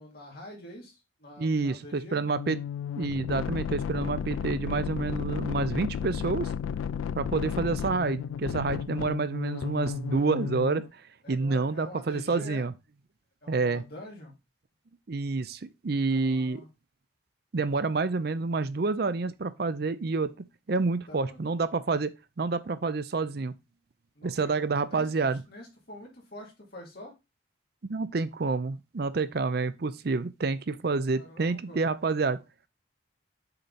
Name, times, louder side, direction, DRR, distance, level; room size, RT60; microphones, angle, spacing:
voice 1, 0.0-2.3 11.2-12.7 13.4-14.3 16.1-16.7 20.7-21.5 24.2-27.1 31.0-31.8, left 1 dB, 50° left, 2.8 m, -46 dB
voice 2, 1.4-2.6 3.0-6.5 7.2-11.0 11.3-12.7 13.5-13.8 15.1-16.6 17.5-20.3 20.7-23.5 24.2-25.4 27.8-32.4, right 4 dB, 50° right, 0.5 m, -28 dB
sound 1, 2.3-10.9, left 8 dB, 90° left, 0.3 m, -33 dB
6.7 x 4.4 x 4.1 m
head